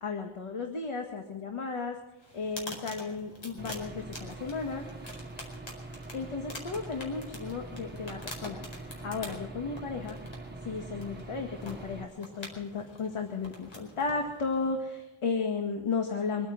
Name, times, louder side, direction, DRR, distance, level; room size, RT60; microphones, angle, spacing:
voice 1, 0.0-2.0 2.3-4.8 6.1-10.2 10.6-16.5, left 4 dB, 80° left, 3 dB, 2.0 m, -34 dB
sound 1, 2.2-14.9, left 1 dB, 65° left, 4.8 m, -46 dB
Aircraft / Engine, 3.6-12.0, right 2 dB, 20° right, 1.4 m, -44 dB
25.0 x 9.5 x 6.0 m, 0.90 s
wide cardioid pair, 155°, 50 cm